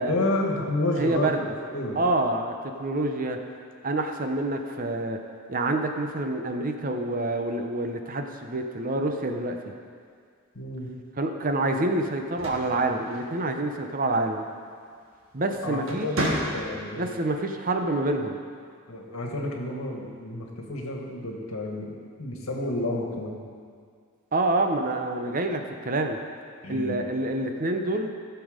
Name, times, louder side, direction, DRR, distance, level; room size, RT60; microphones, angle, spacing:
voice 1, 0.0-1.5 1.7-2.0 10.5-10.9 15.6-17.1 18.9-21.9 22.2-23.4 26.6-27.0, left 1 dB, 75° left, 0 dB, 1.7 m, -30 dB
voice 2, 1.0-1.5 2.0-3.4 3.8-5.2 5.5-9.6 11.2-14.5 15.3-16.1 17.0-18.4 24.3-26.2 26.7-28.1, right 2 dB, 40° right, 4 dB, 0.8 m, -27 dB
sound 1, 12.2-13.7 15.1-15.4 15.8-17.0, right 1 dB, 70° right, 1.7 m, -31 dB
15.0 x 6.9 x 5.1 m, 2.1 s
head